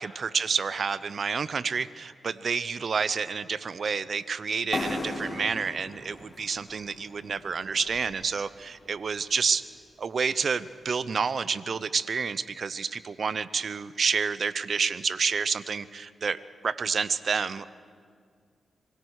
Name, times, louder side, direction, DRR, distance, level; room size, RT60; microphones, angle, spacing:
voice 1, 0.0-9.6 10.0-16.4 16.6-17.7, right 5 dB, 60° right, 17 dB, 0.8 m, -29 dB
sound 1, 4.7-8.4, left 2 dB, 35° left, 3.1 m, -37 dB
25.5 x 17.0 x 6.5 m, 2.1 s
cardioid pair, 50°, 0 cm